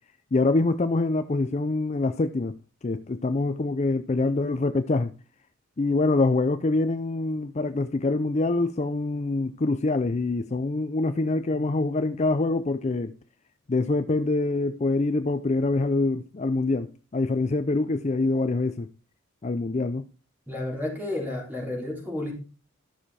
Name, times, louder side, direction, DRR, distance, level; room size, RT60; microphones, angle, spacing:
voice 1, 0.3-2.5 2.8-5.1 5.8-13.1 13.7-18.9 19.4-20.0, left 2 dB, 30° left, 0.4 m, -25 dB
voice 2, 20.5-22.3, left 1 dB, 10° right, 3.8 m, -31 dB
12.5 x 6.6 x 4.2 m
head